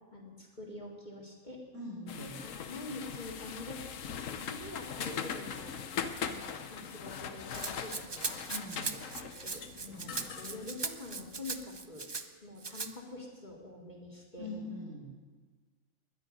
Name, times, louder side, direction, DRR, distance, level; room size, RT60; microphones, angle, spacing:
voice 1, 0.1-1.6 2.2-3.9 4.2-5.7 6.2-8.4 9.1-12.1 12.4-14.5, left 2 dB, 35° left, -2 dB, 2.3 m, -46 dB
voice 2, 1.7-2.3 8.5-8.9 9.8-10.2 14.4-15.1, left 2 dB, 75° right, -6 dB, 4.2 m, -42 dB
sound 1, 2.1-11.6, left 7 dB, 80° left, 1.2 m, -41 dB
Rattle (instrument), 7.5-12.2 12.6-12.9, right 4 dB, 30° right, 0.5 m, -39 dB
20.5 x 11.0 x 5.3 m, 1.4 s
omnidirectional pair, 1.3 m